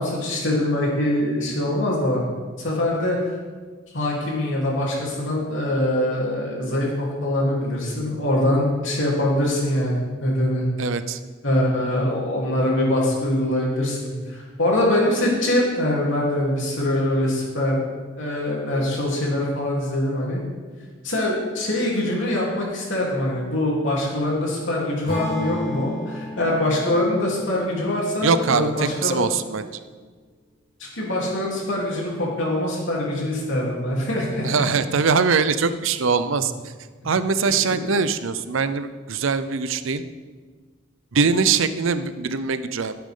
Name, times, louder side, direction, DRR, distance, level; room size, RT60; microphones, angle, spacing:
voice 1, 0.0-2.2 2.6-3.2 3.9-10.6 11.4-17.9 18.2-20.4 21.0-29.1 30.9-34.5 37.7-37.8, left 1 dB, 65° left, -4 dB, 3.5 m, -23 dB
voice 2, 10.8-11.2 28.2-29.7 34.4-36.5 37.0-40.0 41.1-42.9, right 5 dB, 70° right, 12 dB, 0.6 m, -22 dB
Acoustic guitar / Strum, 25.1-29.3, left 1 dB, 30° left, 3.6 m, -33 dB
16.5 x 8.8 x 3.8 m, 1.5 s
head